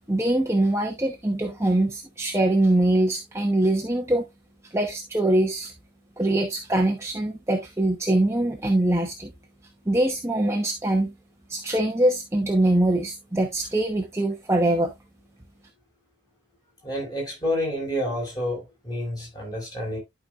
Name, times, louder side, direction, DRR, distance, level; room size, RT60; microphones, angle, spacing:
voice 1, 0.1-4.2 4.7-5.7 6.2-9.3 9.9-11.1 11.5-14.9, right 1 dB, 15° right, 0.9 m, -23 dB
voice 2, 16.8-20.0, left 1 dB, 20° left, 4.9 m, -29 dB
12.0 x 5.1 x 2.4 m
head